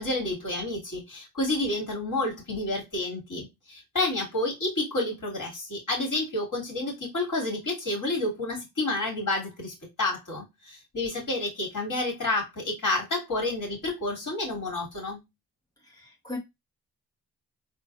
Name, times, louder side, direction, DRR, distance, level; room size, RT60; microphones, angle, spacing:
voice 1, 0.0-15.2, left 2 dB, 45° left, 2.5 m, -30 dB
voice 2, 15.8-16.4, left 2 dB, 10° left, 1.9 m, -38 dB
3.9 x 2.6 x 2.6 m
supercardioid pair, 40°, 41 cm